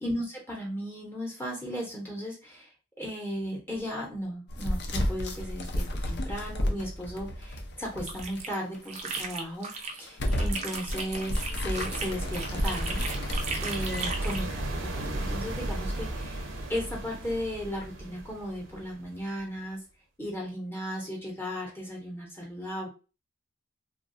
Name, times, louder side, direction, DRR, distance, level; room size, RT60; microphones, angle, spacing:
voice 1, 0.0-2.7 3.0-13.0 13.6-19.8 20.2-22.9, equal, 10° left, -2 dB, 0.8 m, -36 dB
sound 1, 4.5-8.4 8.7-8.8 9.4-9.7 10.1-14.4, equal, 55° left, 0.6 m, -32 dB
sound 2, 7.8-10.0 10.3-14.5, right 4 dB, 35° right, 0.5 m, -36 dB
sound 3, 11.8-19.4, right 1 dB, 90° right, 0.7 m, -35 dB
3.1 x 2.3 x 2.5 m, 0.32 s
head